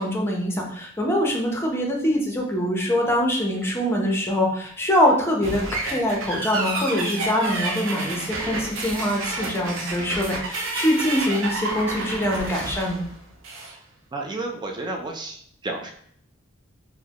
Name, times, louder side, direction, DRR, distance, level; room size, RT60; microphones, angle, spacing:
voice 1, 0.0-13.0, equal, 10° left, -1 dB, 0.7 m, -24 dB
sound 1, 5.4-13.8, right 2 dB, 70° right, 0.7 m, -30 dB
voice 2, 14.1-15.9, right 2 dB, 20° right, 1 dB, 0.4 m, -31 dB
3.9 x 2.1 x 2.9 m, 0.64 s
head